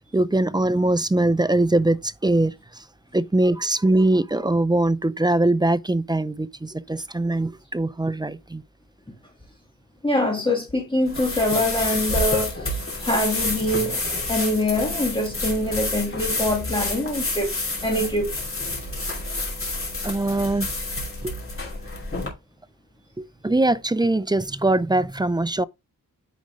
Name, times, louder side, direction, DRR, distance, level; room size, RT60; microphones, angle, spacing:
voice 1, 0.0-2.8 3.1-8.6 20.0-20.7 21.2-21.3 23.2-25.6, right 2 dB, 15° right, 0.4 m, -22 dB
voice 2, 10.0-18.3, left 1 dB, 15° left, 1.7 m, -24 dB
sound 1, 11.1-22.3, left 2 dB, 40° left, 2.9 m, -29 dB
9.3 x 4.9 x 3.1 m
wide cardioid pair, 110°, 35 cm